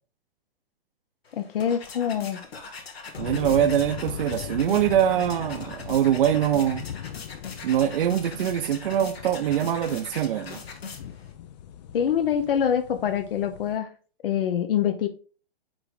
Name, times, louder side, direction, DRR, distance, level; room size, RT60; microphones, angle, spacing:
sound 1, 1.3-11.3, left 5 dB, 90° left, 1.6 m, -41 dB
voice 1, 1.3-2.4 11.9-13.9 14.2-15.1, left 9 dB, 65° left, 1.0 m, -25 dB
sound 2, 3.2-13.8, left 9 dB, 45° left, 0.6 m, -39 dB
voice 2, 3.2-6.8 7.6-10.6, right 10 dB, 60° right, 0.8 m, -23 dB
8.7 x 3.3 x 3.9 m
hypercardioid pair, 150°, 30 cm